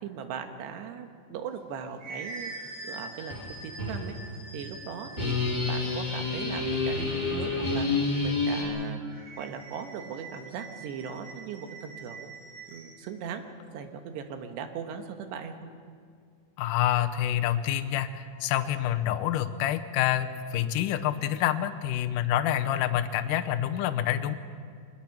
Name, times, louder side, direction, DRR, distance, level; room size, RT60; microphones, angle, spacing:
voice 1, 0.0-2.5 2.8-4.2 4.5-5.4 5.6-7.9 8.2-9.0 9.4-12.3 12.7-15.7, right 7 dB, 85° right, 6 dB, 3.4 m, -39 dB
sound 1, 1.5-6.3 9.0-13.0, right 2 dB, 65° right, 9.2 m, -44 dB
sound 2, 3.3-3.5 3.8-4.0 5.2-8.6, left 3 dB, 25° left, 4.3 m, -28 dB
voice 2, 16.6-24.3, left 11 dB, 80° left, 9 dB, 2.0 m, -27 dB
23.0 x 20.5 x 5.9 m, 2.1 s
omnidirectional pair, 4.8 m